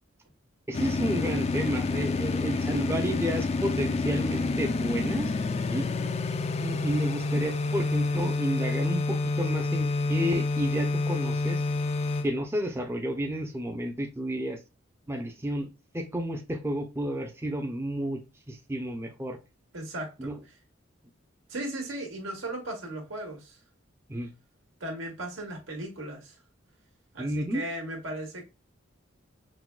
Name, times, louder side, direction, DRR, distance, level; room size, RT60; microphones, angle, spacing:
sound 1, 0.7-12.3, left 3 dB, 35° left, 0.4 m, -28 dB
voice 1, 0.7-5.3 5.7-6.1 6.6-11.6 12.2-14.6 15.1-18.2 18.5-19.4 20.2-20.3 24.1-24.3 27.2-27.6, equal, 15° right, 0.6 m, -31 dB
voice 2, 19.7-20.3 21.5-23.6 24.8-26.4 27.1-28.4, right 1 dB, 90° right, 1.9 m, -36 dB
6.0 x 2.2 x 2.2 m
head